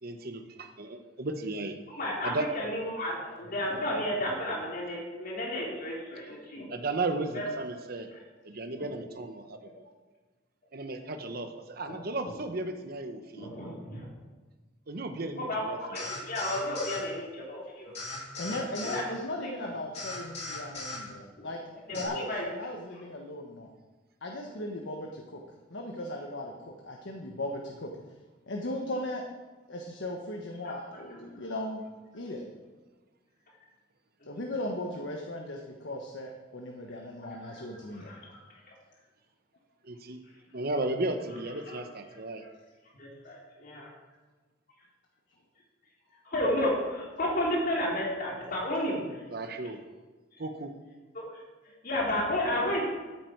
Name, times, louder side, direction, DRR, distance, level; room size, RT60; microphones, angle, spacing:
voice 1, 0.0-1.8 2.2-2.5 6.7-8.1 8.4-9.9 10.7-13.5 14.9-16.1 18.5-18.7 39.8-40.2 40.5-42.4 49.3-49.8 50.4-50.7, right 2 dB, 55° right, 7 dB, 1.1 m, -35 dB
voice 2, 1.9-6.7 7.3-7.4 11.8-11.9 13.4-14.1 15.5-15.6 15.9-17.9 18.8-19.0 19.4-19.5 21.9-22.5 23.0-23.1 30.6-30.7 37.3-37.6 38.0-38.4 41.7-41.8 43.0-43.1 46.2-49.2 51.1-51.4 51.8-52.8, left 1 dB, 55° left, -3 dB, 2.9 m, -32 dB
sound 1, 16.0-17.0 17.9-19.0 19.9-21.0 21.9-22.1, left 2 dB, 35° left, 3.7 m, -38 dB
voice 3, 18.4-21.6 21.9-23.7 24.2-25.4 25.7-27.9 28.5-29.2 29.7-31.9 32.1-32.4 34.3-38.1, left 1 dB, 85° left, 1 dB, 1.3 m, -37 dB
14.0 x 9.1 x 4.7 m, 1.3 s
head